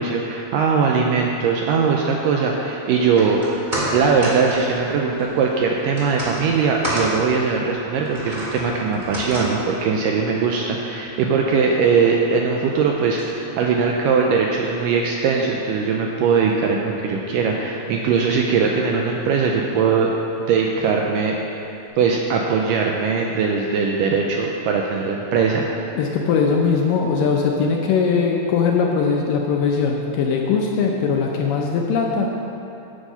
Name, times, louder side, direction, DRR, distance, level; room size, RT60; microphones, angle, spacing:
voice 1, 0.0-3.4 3.9-20.1 20.4-21.7 22.0-25.7, right 5 dB, 90° right, 0 dB, 1.9 m, -20 dB
sound 1, 3.0-15.4 15.7-15.8, right 1 dB, 20° right, 1.4 m, -33 dB
voice 2, 26.0-32.3, left 5 dB, 75° left, 0 dB, 2.1 m, -20 dB
10.0 x 8.1 x 5.6 m, 2.9 s
omnidirectional pair, 4.5 m